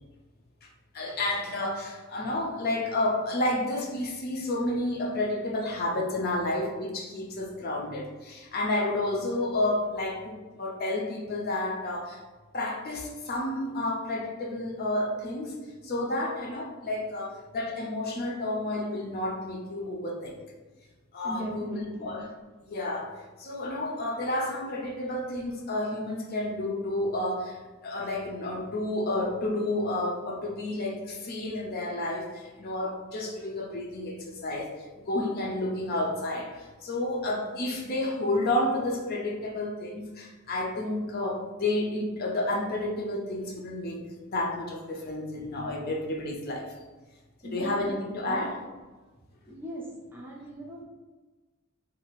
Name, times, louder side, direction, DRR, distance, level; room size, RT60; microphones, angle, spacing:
voice 1, 0.9-12.2 12.5-15.5 15.8-20.4 21.1-22.3 22.6-44.0 44.3-46.7 47.4-48.6 49.5-49.6, left 1 dB, 50° left, -1 dB, 0.5 m, -31 dB
voice 2, 21.2-22.1 47.4-47.9 48.3-48.5 49.5-49.8 50.1-50.8, equal, 10° right, -3 dB, 0.5 m, -38 dB
2.7 x 2.4 x 2.9 m, 1.3 s
head